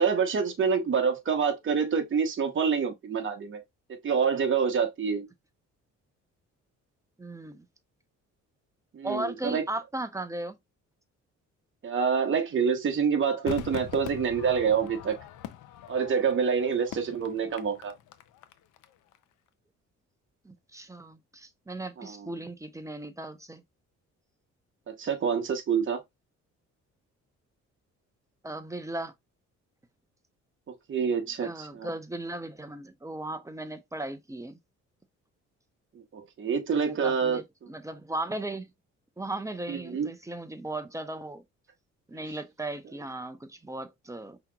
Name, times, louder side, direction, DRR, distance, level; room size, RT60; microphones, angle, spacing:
voice 1, 0.0-3.6 3.9-5.3 8.9-9.6 11.8-15.1 15.9-17.9 22.0-22.3 24.9-26.0 30.7-31.9 36.1-37.4 39.7-40.1, right 6 dB, 40° right, 1.0 m, -27 dB
voice 2, 7.2-7.7 9.0-10.6 20.4-23.6 28.4-29.1 31.4-34.6 36.7-38.7 39.2-41.4 42.1-44.4, right 2 dB, 10° right, 0.7 m, -37 dB
Crowd / Fireworks, 13.5-18.9 19.1-19.2, left 10 dB, 85° left, 0.6 m, -42 dB
5.6 x 2.9 x 2.3 m
cardioid pair, 90°, 30 cm